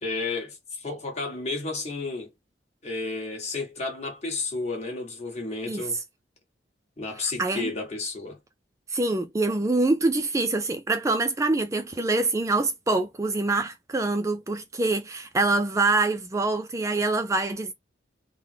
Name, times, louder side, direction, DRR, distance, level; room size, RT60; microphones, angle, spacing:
voice 1, 0.0-2.3 2.8-6.0 7.0-8.4, left 3 dB, 40° left, 1.6 m, -32 dB
voice 2, 7.2-7.7 8.9-17.7, right 2 dB, 15° right, 0.3 m, -25 dB
3.7 x 2.1 x 4.4 m
head